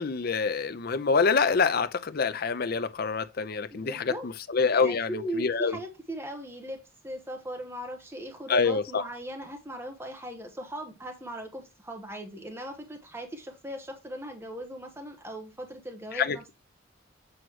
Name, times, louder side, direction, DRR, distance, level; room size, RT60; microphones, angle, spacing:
voice 1, 0.0-5.8 8.5-9.0 16.1-16.5, left 5 dB, 45° left, 0.5 m, -26 dB
voice 2, 3.7-4.3 4.7-16.5, right 1 dB, 10° right, 1.0 m, -39 dB
7.8 x 3.0 x 6.2 m
head